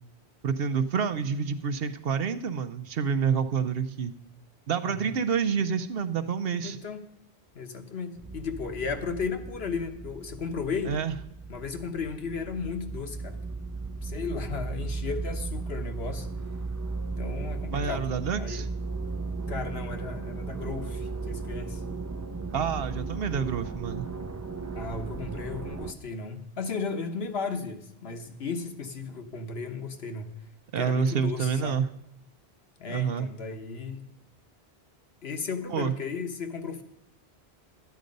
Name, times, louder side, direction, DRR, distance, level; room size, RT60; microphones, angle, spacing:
voice 1, 0.4-4.1 4.7-6.8 10.9-11.1 17.7-18.7 22.5-24.1 30.7-31.9 32.9-33.3 35.7-35.9, right 6 dB, 65° right, 10 dB, 0.9 m, -28 dB
voice 2, 6.6-7.0 7.5-11.0 11.5-13.4 14.0-16.3 17.2-18.1 18.3-18.7 19.5-21.8 24.7-30.3 30.8-31.8 32.8-34.0 35.2-36.8, left 5 dB, 70° left, 6 dB, 1.3 m, -35 dB
sound 1, 8.2-25.9, right 4 dB, 20° right, 0.4 m, -36 dB
12.5 x 9.3 x 5.2 m, 0.77 s
omnidirectional pair, 1.1 m